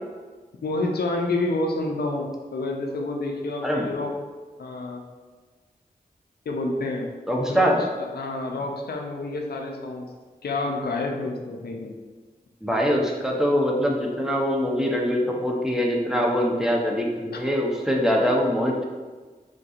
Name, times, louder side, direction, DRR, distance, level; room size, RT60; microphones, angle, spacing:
voice 1, 0.6-4.1 4.6-5.0 6.5-7.1 7.5-7.7 8.0-10.1 10.4-11.9 17.3-17.4, left 2 dB, 80° left, 1 dB, 0.4 m, -28 dB
voice 2, 7.3-7.8 12.6-18.8, equal, 5° right, -1 dB, 0.6 m, -23 dB
3.6 x 2.6 x 2.4 m, 1.4 s
cardioid pair, 50°, 16 cm